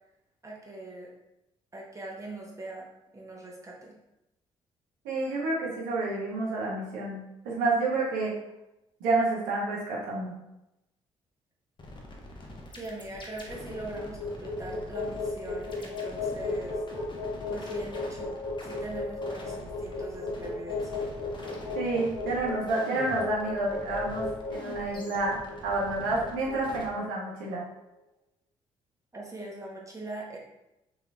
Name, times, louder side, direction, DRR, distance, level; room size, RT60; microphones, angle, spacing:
voice 1, 0.4-1.1 1.7-4.0 12.8-16.8 17.5-21.1 29.1-30.4, right 2 dB, 20° right, -2 dB, 1.1 m, -42 dB
voice 2, 5.0-8.3 9.0-10.3 21.7-25.4 25.6-27.6, right 2 dB, 75° right, -4 dB, 0.9 m, -29 dB
sound 1, 11.8-26.9, left 1 dB, 35° left, 0.8 m, -44 dB
sound 2, 13.4-27.6, left 3 dB, 85° left, 0.7 m, -35 dB
3.2 x 3.0 x 2.5 m, 0.91 s
hypercardioid pair, 45°, 14 cm